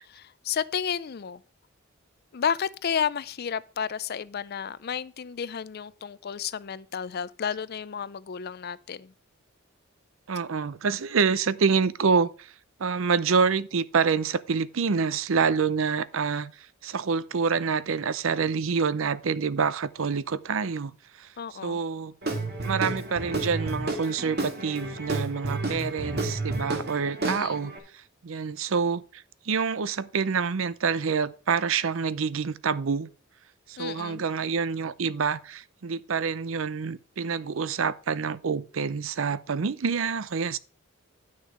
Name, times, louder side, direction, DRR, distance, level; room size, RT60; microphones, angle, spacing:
voice 1, 0.1-1.4 2.3-9.1 21.4-21.8 27.2-27.6 33.8-34.2, left 7 dB, 50° left, 0.5 m, -32 dB
voice 2, 10.3-12.5 12.8-22.1 22.6-33.1 33.7-40.6, right 5 dB, 70° right, 0.6 m, -27 dB
Guitar / Drum, 22.2-27.8, right 2 dB, 50° right, 2.1 m, -31 dB
10.5 x 6.5 x 4.9 m
head